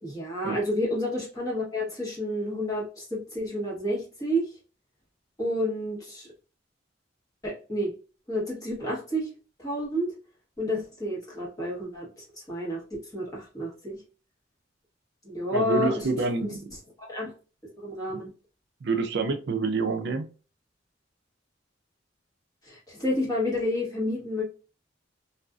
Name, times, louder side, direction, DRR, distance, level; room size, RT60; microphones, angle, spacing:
voice 1, 0.0-4.5 5.4-6.3 7.4-7.9 8.3-9.3 9.6-10.1 10.6-14.0 15.2-16.1 16.4-16.5 17.0-17.3 17.8-18.3 22.6-24.4, left 1 dB, 20° left, -4 dB, 1.1 m, -30 dB
voice 2, 15.5-16.7 18.8-20.3, right 4 dB, 60° right, 5 dB, 0.4 m, -27 dB
2.5 x 2.3 x 2.3 m, 0.34 s
head